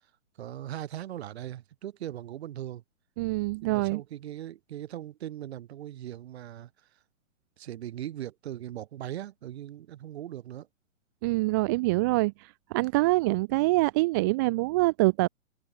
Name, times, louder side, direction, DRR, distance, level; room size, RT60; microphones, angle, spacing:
voice 1, 0.4-2.8 3.6-7.0 7.6-10.7, right 12 dB, 55° right, 7.7 m, -39 dB
voice 2, 3.2-4.0 11.2-12.3 12.7-15.3, right 22 dB, 15° right, 0.4 m, -25 dB
hypercardioid pair, 135°, 39 cm